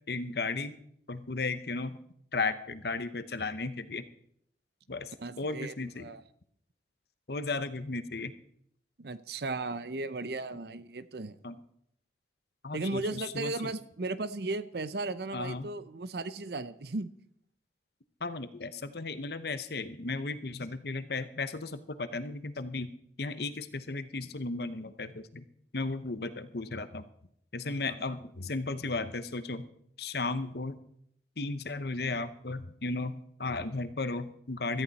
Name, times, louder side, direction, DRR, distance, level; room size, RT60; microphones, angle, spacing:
voice 1, 0.1-0.8 1.1-2.0 2.3-4.0 4.9-6.1 7.3-8.3 11.4-11.6 12.6-13.7 15.3-15.7 18.2-22.9 23.2-25.4 25.7-27.1 27.5-29.6 30.0-30.8 31.4-34.8, left 3 dB, 55° left, 12 dB, 0.9 m, -35 dB
voice 2, 5.2-6.2 9.0-11.4 12.7-17.1 27.7-27.8, right 3 dB, 60° right, 15 dB, 0.7 m, -36 dB
17.0 x 13.5 x 4.2 m, 0.71 s
head